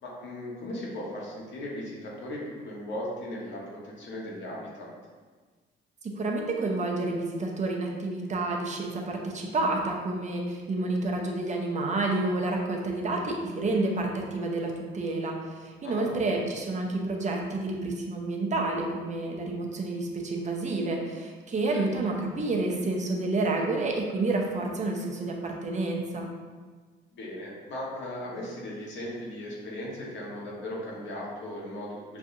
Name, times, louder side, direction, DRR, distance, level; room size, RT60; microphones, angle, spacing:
voice 1, 0.0-4.9 15.8-16.1 21.7-21.9 27.1-32.2, left 1 dB, 65° left, -4 dB, 1.3 m, -37 dB
voice 2, 6.0-26.3, right 2 dB, 35° right, 0 dB, 0.7 m, -29 dB
6.1 x 2.7 x 2.6 m, 1.4 s
cardioid pair, 90°, 20 cm